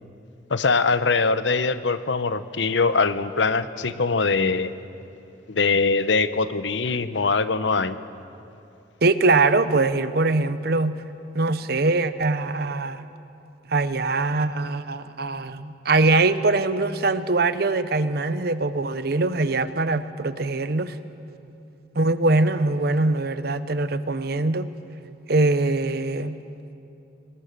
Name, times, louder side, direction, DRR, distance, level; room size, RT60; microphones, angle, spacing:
voice 1, 0.5-4.7 5.5-8.0, left 4 dB, 75° left, 12 dB, 0.8 m, -22 dB
voice 2, 9.0-11.0 11.3-13.0 13.7-20.9 22.0-24.7 25.3-26.4, right 3 dB, 55° right, 12 dB, 0.9 m, -22 dB
26.0 x 20.0 x 6.7 m, 2.7 s
head